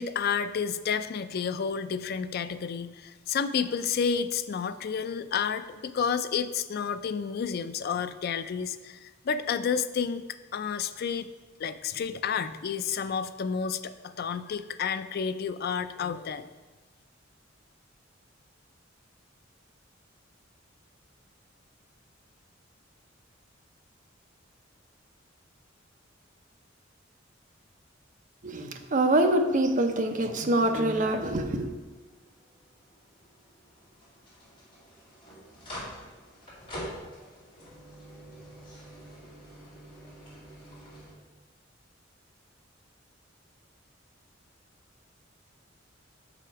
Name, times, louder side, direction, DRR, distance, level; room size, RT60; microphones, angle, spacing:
voice 1, 0.0-10.2 10.5-11.3 11.6-16.5, left 6 dB, 55° left, 12 dB, 0.4 m, -30 dB
voice 2, 28.4-31.7, right 1 dB, 40° right, 5 dB, 0.7 m, -25 dB
sound 1, 31.4-41.1, equal, 30° left, 2.5 m, -46 dB
7.0 x 4.9 x 4.6 m, 1.2 s
head